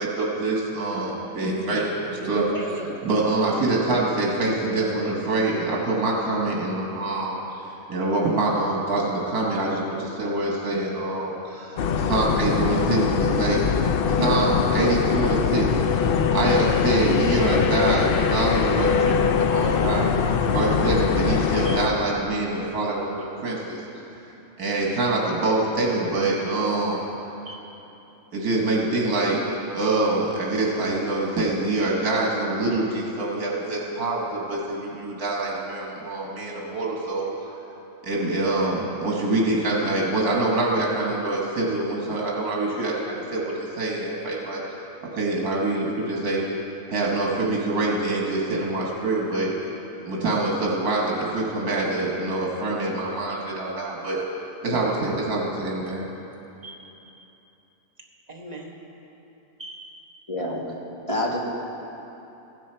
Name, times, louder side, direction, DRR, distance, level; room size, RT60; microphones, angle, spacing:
voice 1, 0.0-2.4 3.1-13.6 14.1-20.1 20.5-24.0 24.6-27.0 28.3-29.4 29.7-37.5 38.0-44.6 45.1-46.4 46.9-49.5 50.0-54.2 54.6-56.0, right 2 dB, 80° right, -2 dB, 1.9 m, -25 dB
voice 2, 2.2-3.1 21.6-21.8 27.5-27.6 56.6-56.8 57.1-57.3 58.3-58.8 59.6-59.9, right 3 dB, 30° right, 0 dB, 1.1 m, -35 dB
sound 1, 11.8-21.9, left 6 dB, 85° left, 0.5 m, -22 dB
voice 3, 60.3-60.6 61.1-61.4, left 1 dB, 20° left, -2 dB, 1.5 m, -26 dB
15.0 x 10.0 x 4.4 m, 3.0 s
omnidirectional pair, 1.6 m